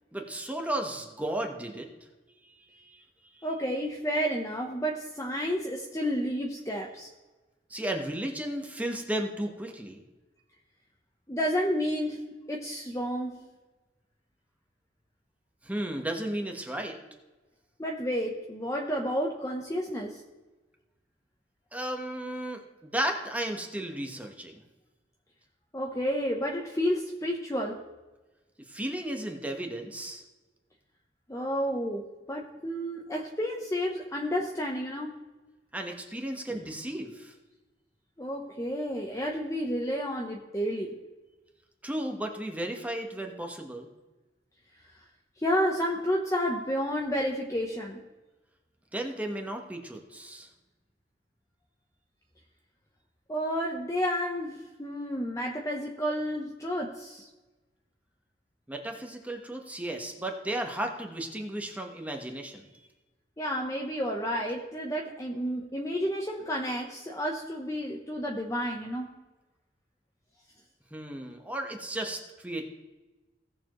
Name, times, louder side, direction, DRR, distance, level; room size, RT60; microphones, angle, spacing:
voice 1, 0.1-1.9 2.4-3.0 3.3-3.5 7.7-10.0 15.6-17.0 21.7-24.5 28.7-30.2 35.7-37.3 41.8-43.9 48.9-50.5 58.7-62.7 70.9-72.7, right 1 dB, 10° right, 3 dB, 1.3 m, -34 dB
voice 2, 3.4-7.1 11.3-13.4 17.8-20.2 25.7-27.8 31.3-35.2 36.5-36.6 38.2-40.9 45.4-48.0 53.3-57.3 63.4-69.2, equal, 15° left, -1 dB, 0.9 m, -31 dB
17.5 x 7.0 x 3.1 m, 1.1 s
head